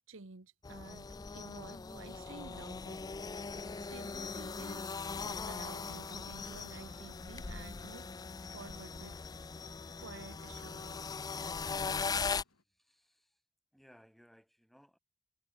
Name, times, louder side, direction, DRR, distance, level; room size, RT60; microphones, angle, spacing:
voice 1, 0.1-3.0 3.5-8.1 8.5-9.2 10.0-11.3, right 3 dB, 65° right, 1.2 m, -52 dB
sound 1, 0.6-12.4, left 5 dB, 20° left, 0.4 m, -40 dB
sound 2, 2.0-4.7 5.4-6.0, left 5 dB, 35° left, 1.5 m, -62 dB
sound 3, 5.5-12.6, left 4 dB, 85° left, 2.2 m, -63 dB
voice 2, 12.3-13.4 13.7-15.0, equal, ahead, 3.2 m, -64 dB
head